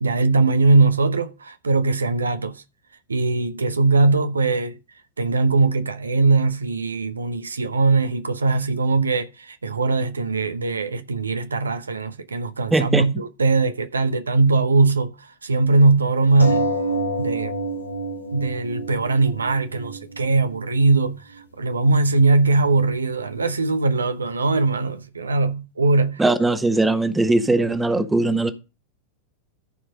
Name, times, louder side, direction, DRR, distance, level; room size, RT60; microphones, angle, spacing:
voice 1, 0.0-2.6 3.1-4.8 5.2-15.1 15.4-16.7 17.2-17.5 18.3-21.2 21.6-26.2, right 3 dB, 75° right, 0.9 m, -20 dB
voice 2, 12.7-13.1 26.2-28.5, right 2 dB, 10° right, 1.2 m, -20 dB
sound 1, 16.4-21.4 22.2-22.3 22.6-22.7, right 1 dB, 85° left, 2.2 m, -28 dB
14.0 x 4.7 x 5.2 m
figure-of-eight pair, 90°, 0 cm